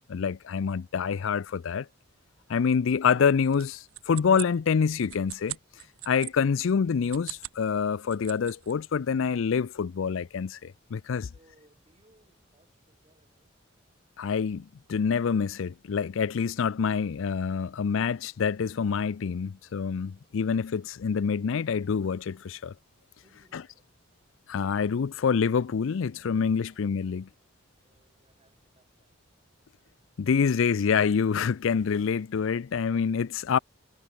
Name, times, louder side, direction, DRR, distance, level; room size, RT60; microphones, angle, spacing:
voice 1, 0.1-1.9 2.5-5.6 6.1-11.3 14.2-22.7 23.5-23.6 24.5-27.3 30.2-33.6, left 6 dB, 70° left, 0.4 m, -26 dB
sound 1, 3.5-6.3 7.0-7.6 7.9-8.7, right 17 dB, 90° right, 1.1 m, -40 dB
voice 2, 11.3-13.6 20.1-20.4 23.2-23.9 26.6-26.9 27.8-29.2 29.8-30.0, right 1 dB, 30° right, 6.1 m, -65 dB
head